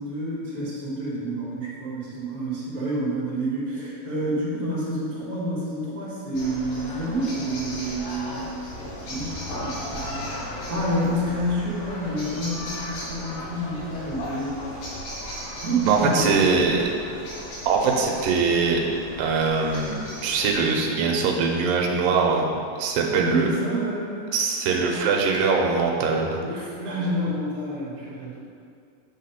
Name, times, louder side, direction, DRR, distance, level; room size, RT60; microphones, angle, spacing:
voice 1, 0.0-8.5 9.1-14.6 15.6-16.7 23.1-24.2 26.4-28.4, right 1 dB, 30° right, -7 dB, 2.1 m, -28 dB
sound 1, 6.3-20.6, equal, 90° left, 3.4 m, -36 dB
voice 2, 15.9-16.8 17.7-18.8 19.2-23.5 24.3-26.4, right 4 dB, 90° right, 1 dB, 2.5 m, -22 dB
8.3 x 4.0 x 5.8 m, 2.4 s
omnidirectional pair, 3.9 m